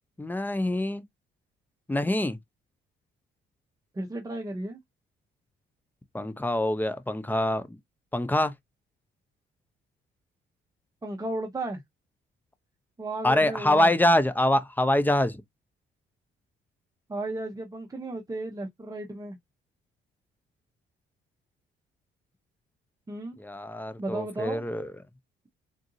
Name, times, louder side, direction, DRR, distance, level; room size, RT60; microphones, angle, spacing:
voice 1, 0.2-1.0 1.9-2.4 6.1-7.8 8.1-8.5 13.2-15.4 23.4-24.9, left 1 dB, 10° left, 0.5 m, -25 dB
voice 2, 3.9-4.8 11.0-11.8 13.0-13.9 17.1-19.4 23.1-23.4 24.0-24.6, right 2 dB, 15° right, 0.8 m, -34 dB
3.8 x 2.5 x 2.6 m
cardioid pair, 90°, 20 cm